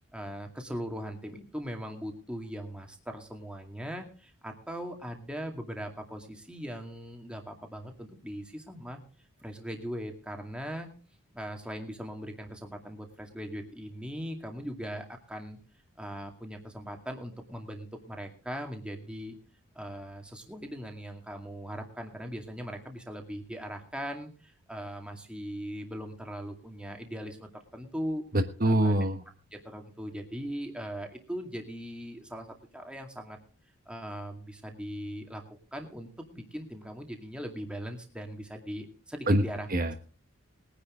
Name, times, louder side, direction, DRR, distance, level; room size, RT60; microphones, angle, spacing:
voice 1, 0.1-9.0 9.4-10.9 11.3-15.6 16.0-19.4 19.8-28.2 28.6-29.0 29.5-33.4 33.9-39.7, equal, 5° right, 3 dB, 2.3 m, -40 dB
voice 2, 28.3-29.2 39.3-39.4 39.7-40.0, right 1 dB, 40° right, 6 dB, 1.3 m, -24 dB
21.0 x 10.0 x 3.8 m, 0.38 s
head